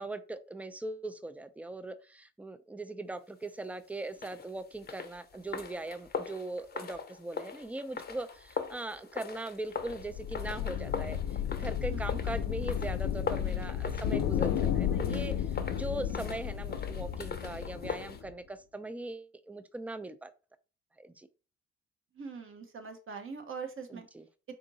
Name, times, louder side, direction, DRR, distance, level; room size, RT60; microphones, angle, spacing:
voice 1, 0.0-20.3 21.0-21.3 23.9-24.3, right 2 dB, 5° right, 0.3 m, -40 dB
sound 1, 4.1-18.2, left 6 dB, 35° left, 0.6 m, -41 dB
sound 2, 9.8-18.3, left 9 dB, 80° left, 0.7 m, -33 dB
voice 2, 11.9-12.2 22.1-24.1, right 5 dB, 45° right, 0.8 m, -42 dB
3.7 x 2.6 x 3.9 m
cardioid pair, 90°, 30 cm